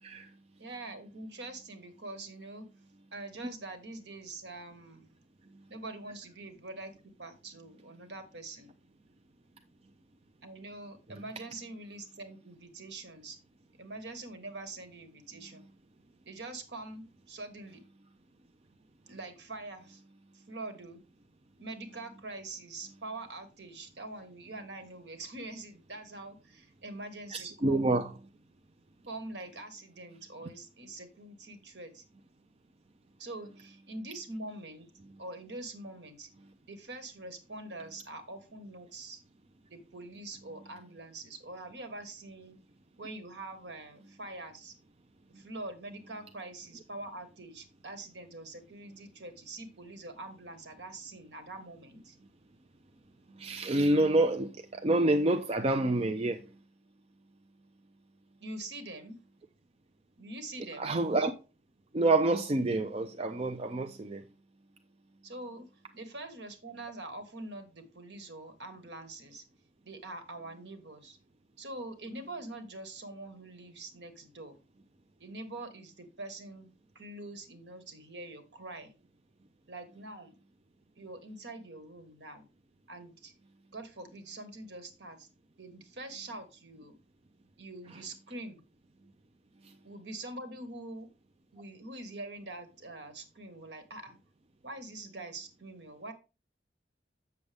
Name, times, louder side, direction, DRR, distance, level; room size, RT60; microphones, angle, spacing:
voice 1, 0.6-2.7 3.1-5.1 5.7-8.7 10.4-13.4 13.7-15.6 16.2-17.8 19.1-20.0 20.3-21.0 21.6-27.9 29.1-32.0 33.2-34.9 35.2-36.3 36.7-39.2 39.7-42.6 43.0-44.7 45.3-52.2 58.4-59.2 60.2-60.9 65.2-65.7 65.9-69.4 69.8-71.2 71.6-74.6 75.2-78.9 79.7-80.3 80.9-82.5 82.9-83.3 83.7-85.3 85.6-87.0 87.6-88.6 89.8-91.1 91.5-94.2 94.6-96.1, right 2 dB, 65° right, 1.4 m, -44 dB
voice 2, 27.3-28.1 53.4-56.4 60.8-61.4 61.9-64.2, right 2 dB, 30° right, 0.5 m, -27 dB
8.0 x 6.7 x 3.4 m
head